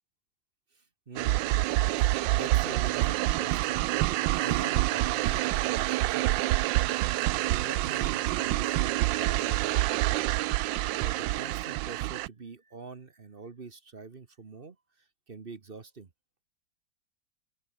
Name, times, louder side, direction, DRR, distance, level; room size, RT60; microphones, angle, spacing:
voice 1, 0.7-1.6 2.0-4.1 4.4-6.6 7.1-7.2 7.4-10.3 11.0-16.1, right 4 dB, 35° right, 1.2 m, -45 dB
sound 1, 1.2-12.3, right 17 dB, 85° right, 1.3 m, -27 dB
open air
omnidirectional pair, 2.0 m